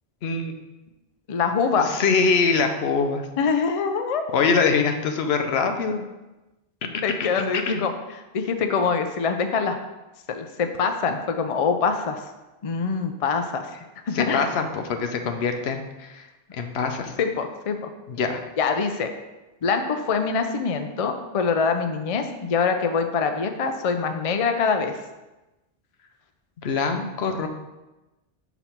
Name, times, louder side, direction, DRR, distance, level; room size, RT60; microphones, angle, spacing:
voice 1, 0.2-0.5 1.8-3.2 4.3-6.1 7.7-7.8 14.1-16.2 16.5-17.1 18.1-18.4 26.6-27.5, left 5 dB, 75° left, 6 dB, 0.9 m, -23 dB
voice 2, 1.3-1.9 3.4-4.4 7.0-7.9 8.3-9.8 10.3-12.3 12.6-13.7 14.1-14.5 17.2-17.9 18.6-19.1 19.6-25.0, left 5 dB, 50° left, 6 dB, 0.4 m, -24 dB
6.0 x 4.0 x 4.4 m, 1.1 s
omnidirectional pair, 1.1 m